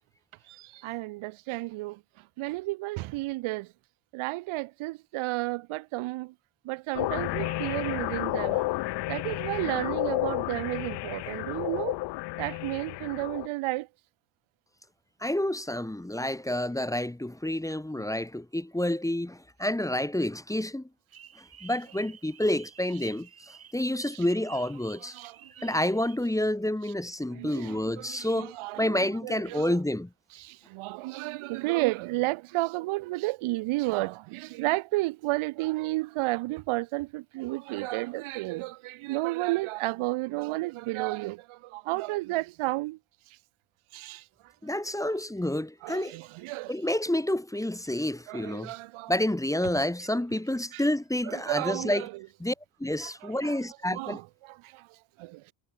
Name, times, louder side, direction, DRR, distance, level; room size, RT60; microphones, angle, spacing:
voice 1, 0.5-2.0 2.4-3.7 4.1-6.3 6.6-8.7 9.1-12.0 12.4-13.9 24.1-24.2 25.0-25.9 27.3-29.8 30.3-43.0 43.9-44.2 45.8-46.7 48.3-49.1 50.7-50.8 51.2-52.3 53.0-53.6 53.9-55.5, right 20 dB, 75° right, 1.5 m, -32 dB
sound 1, 6.9-13.5, left 20 dB, 55° left, 0.5 m, -31 dB
voice 2, 15.2-20.9 21.6-23.3 23.7-25.1 25.6-30.1 44.6-46.2 46.7-48.7 49.1-52.1 52.4-52.5 52.8-54.2, left 1 dB, 5° left, 1.5 m, -29 dB
sound 2, 21.1-26.2, right 9 dB, 45° right, 2.5 m, -52 dB
supercardioid pair, 70°, 49 cm